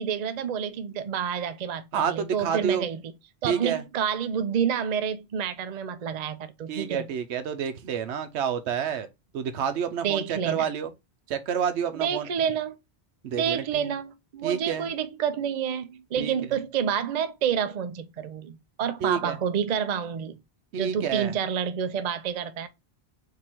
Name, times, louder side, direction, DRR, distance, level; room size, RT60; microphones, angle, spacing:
voice 1, 0.0-3.1 3.4-7.1 10.0-10.7 11.9-12.8 13.3-20.4 20.8-22.7, right 8 dB, 50° right, 0.5 m, -29 dB
voice 2, 1.9-2.9 3.4-3.8 6.7-9.1 9.3-10.9 11.3-12.3 13.2-13.9 14.4-14.9 16.2-16.3 19.0-19.4 20.7-21.3, right 8 dB, 85° right, 1.0 m, -29 dB
3.9 x 2.8 x 4.3 m
omnidirectional pair, 1.1 m